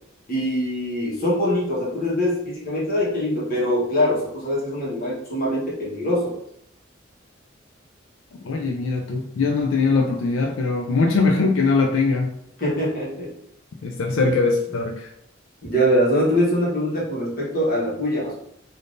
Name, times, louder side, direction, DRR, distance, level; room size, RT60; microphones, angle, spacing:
voice 1, 0.3-6.4 12.6-13.3 14.4-14.5 15.6-18.3, equal, 50° left, -5 dB, 1.2 m, -23 dB
voice 2, 8.4-12.3 13.8-15.1, left 4 dB, 90° left, 1 dB, 0.4 m, -21 dB
3.5 x 2.6 x 2.5 m, 0.73 s
head